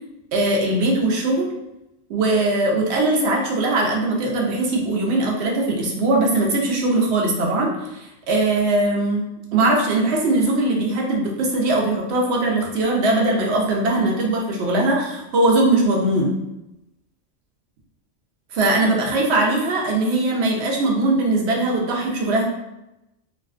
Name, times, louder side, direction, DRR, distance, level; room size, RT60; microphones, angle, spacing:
voice 1, 0.3-1.5 2.1-16.4 18.5-22.4, right 2 dB, 65° right, -1 dB, 0.7 m, -20 dB
2.3 x 2.2 x 2.4 m, 0.90 s
omnidirectional pair, 1.3 m